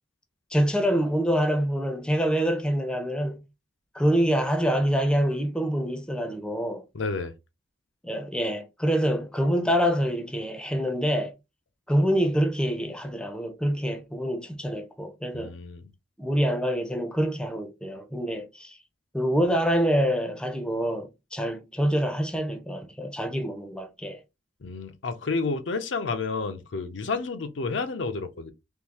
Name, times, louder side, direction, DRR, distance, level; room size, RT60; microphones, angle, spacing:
voice 1, 0.5-3.4 3.9-6.8 8.0-11.3 11.9-15.5 16.2-18.7 19.1-24.2, equal, 5° left, 0.5 m, -26 dB
voice 2, 6.9-7.3 15.3-15.8 24.6-28.5, left 4 dB, 80° left, 0.6 m, -30 dB
3.6 x 2.6 x 2.8 m
head